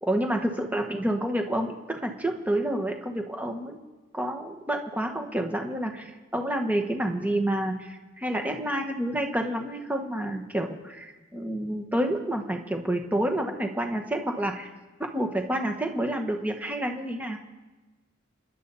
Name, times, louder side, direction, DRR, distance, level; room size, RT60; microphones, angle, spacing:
voice 1, 0.0-3.8 4.1-14.7 15.1-17.4, right 1 dB, 10° right, 3 dB, 1.4 m, -29 dB
29.0 x 11.0 x 4.2 m, 1.2 s
head